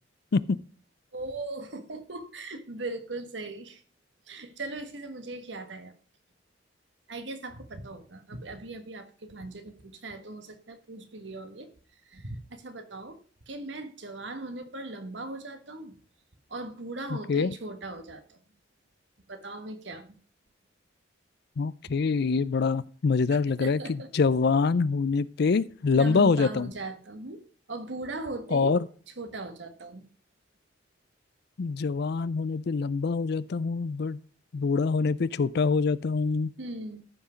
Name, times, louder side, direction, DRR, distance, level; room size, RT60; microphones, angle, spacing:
voice 1, 1.1-3.8 4.3-5.9 7.1-11.7 12.0-13.2 13.5-16.0 16.5-18.4 19.3-20.2 23.5-24.1 25.9-28.8 29.1-30.0 36.6-37.0, right 2 dB, 70° right, 9 dB, 1.5 m, -39 dB
voice 2, 17.1-17.5 21.6-26.7 28.5-28.8 31.6-34.2 34.5-36.5, left 4 dB, 60° left, 17 dB, 0.4 m, -25 dB
14.0 x 6.0 x 5.1 m, 0.43 s
head